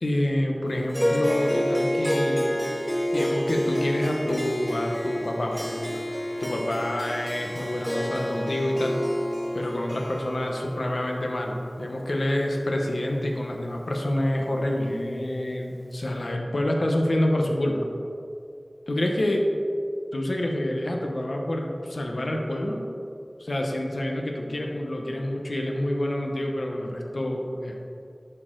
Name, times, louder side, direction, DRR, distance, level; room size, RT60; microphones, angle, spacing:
voice 1, 0.0-2.6 3.1-6.0 6.4-9.0 9.5-17.9 18.9-19.5 20.1-22.9 23.4-27.8, left 1 dB, 80° left, 1 dB, 0.9 m, -27 dB
Harp, 0.9-13.5, equal, 5° left, 0.6 m, -29 dB
11.0 x 4.4 x 3.8 m, 2.5 s
wide cardioid pair, 50°, 0 cm